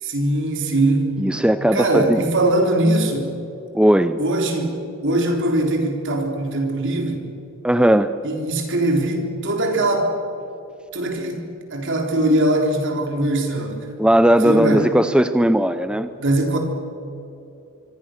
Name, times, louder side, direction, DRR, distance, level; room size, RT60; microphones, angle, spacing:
voice 1, 0.0-1.1 1.7-3.3 4.2-7.3 8.2-10.1 10.9-11.4 11.7-13.9 14.4-14.9 16.2-16.6, right 1 dB, 60° right, 3 dB, 3.8 m, -21 dB
voice 2, 1.2-2.2 3.7-4.2 7.6-8.1 14.0-16.1, right 1 dB, 5° right, 11 dB, 0.5 m, -17 dB
25.0 x 25.0 x 6.5 m, 2.8 s
head